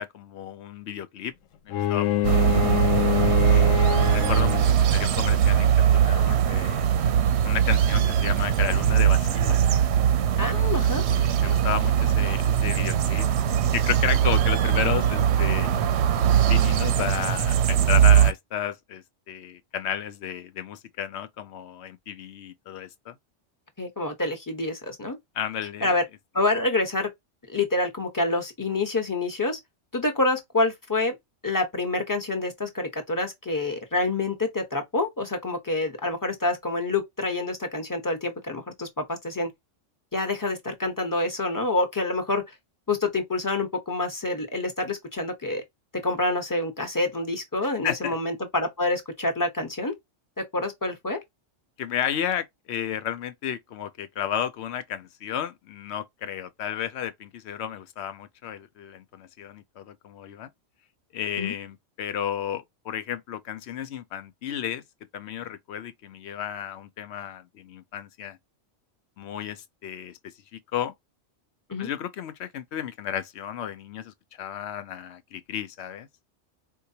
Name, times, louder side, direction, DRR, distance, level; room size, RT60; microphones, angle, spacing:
voice 1, 0.0-1.3 1.7-2.5 3.5-6.9 7.4-9.6 10.6-10.7 11.1-13.3 13.7-15.7 16.5-23.1 25.3-25.9 47.8-48.1 51.8-60.5 61.1-64.8 65.1-68.4 69.2-70.2 70.5-70.9 71.8-76.1, left 9 dB, 65° left, 0.8 m, -33 dB
Bowed string instrument, 1.7-4.9, left 12 dB, 90° left, 0.9 m, -26 dB
sound 1, 2.2-18.3, right 9 dB, 70° right, 0.8 m, -21 dB
voice 2, 10.4-11.0 23.8-25.2 25.8-26.0 26.3-27.1 27.5-29.6 29.9-31.2 31.4-39.5 40.1-42.4 42.9-45.6 45.9-49.9 50.4-51.2 61.4-61.5 71.7-71.9, left 2 dB, 20° left, 0.9 m, -27 dB
4.5 x 2.2 x 2.6 m
omnidirectional pair, 1.3 m